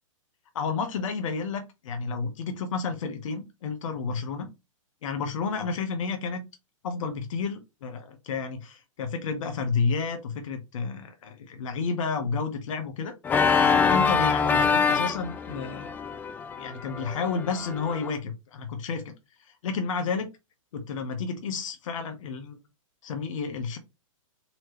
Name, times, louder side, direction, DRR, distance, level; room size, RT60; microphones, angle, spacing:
voice 1, 0.5-4.5 5.0-6.4 6.8-13.1 13.6-16.0 16.6-19.1 19.6-20.3 20.7-22.6 23.0-23.8, left 5 dB, 65° left, 1.0 m, -31 dB
Organ, 13.2-18.1, left 5 dB, 10° left, 0.3 m, -25 dB
4.2 x 3.1 x 3.0 m
hypercardioid pair, 135°, 18 cm